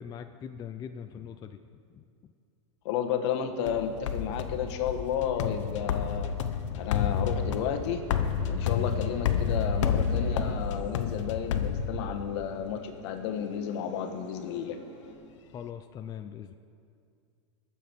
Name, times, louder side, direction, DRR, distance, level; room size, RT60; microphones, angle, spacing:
voice 1, 0.0-1.6 1.9-2.0 15.5-16.5, left 8 dB, 25° left, 8 dB, 0.5 m, -41 dB
voice 2, 2.8-6.3 6.8-8.0 8.5-14.8, left 8 dB, 65° left, 6 dB, 1.3 m, -32 dB
sound 1, 3.7-12.4, left 7 dB, 80° left, 0.9 m, -30 dB
sound 2, 5.8-10.6, right 5 dB, 45° right, 2.6 m, -46 dB
sound 3, 6.4-15.1, left 5 dB, 45° left, 2.6 m, -54 dB
21.0 x 7.3 x 4.5 m, 2.3 s
supercardioid pair, 120°, 15 cm